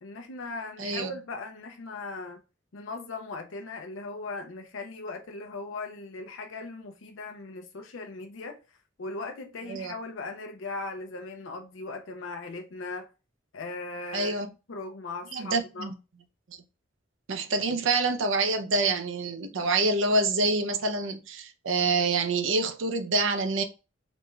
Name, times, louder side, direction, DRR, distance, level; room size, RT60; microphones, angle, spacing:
voice 1, 0.0-2.4 2.7-8.6 9.0-13.1 13.5-14.4 14.7-15.9, left 3 dB, 90° left, 0.5 m, -38 dB
voice 2, 0.8-1.1 9.7-9.9 14.1-14.5 15.3-15.9 17.3-23.6, right 3 dB, 80° right, 0.6 m, -26 dB
4.2 x 2.3 x 3.1 m
head